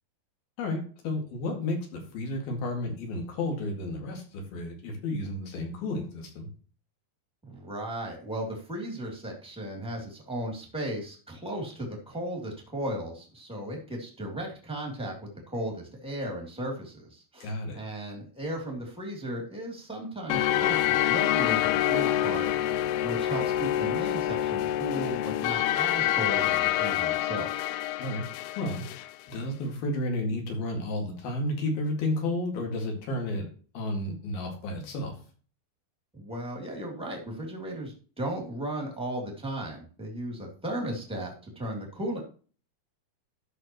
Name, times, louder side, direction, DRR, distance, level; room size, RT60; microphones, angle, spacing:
voice 1, 0.6-6.5 17.4-17.8 28.0-28.3 28.6-28.8 29.3-33.5 33.7-35.1, left 1 dB, 65° left, 2 dB, 3.9 m, -32 dB
voice 2, 7.4-15.1 15.5-22.5 23.0-27.5 36.1-42.2, right 1 dB, ahead, 0 dB, 2.1 m, -36 dB
sound 1, 20.3-29.1, left 13 dB, 85° left, 2.6 m, -27 dB
13.5 x 6.5 x 3.1 m, 0.39 s
omnidirectional pair, 4.7 m